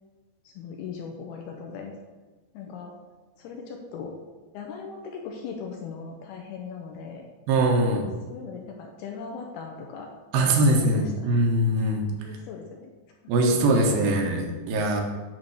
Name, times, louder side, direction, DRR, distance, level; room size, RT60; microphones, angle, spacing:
voice 1, 0.4-2.0 2.5-2.9 3.4-4.1 4.5-7.2 8.3-10.1 10.3-11.4 12.2-12.9 13.5-14.3, left 5 dB, 85° left, 2 dB, 2.3 m, -39 dB
voice 2, 7.5-8.0 10.3-12.0 13.3-15.0, right 1 dB, 70° right, 2 dB, 2.5 m, -22 dB
9.2 x 3.7 x 6.3 m, 1.3 s
omnidirectional pair, 5.2 m